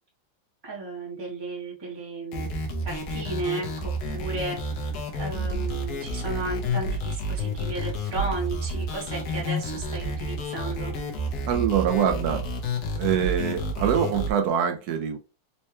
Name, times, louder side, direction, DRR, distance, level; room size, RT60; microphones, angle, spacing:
voice 1, 0.6-2.5 2.8-4.9 5.2-10.9, right 3 dB, 20° right, 0.7 m, -34 dB
sound 1, 2.3-14.3, equal, 70° left, 1.3 m, -30 dB
voice 2, 11.5-12.4 13.0-15.2, right 8 dB, 70° right, 1.0 m, -24 dB
4.3 x 2.2 x 2.8 m
omnidirectional pair, 1.9 m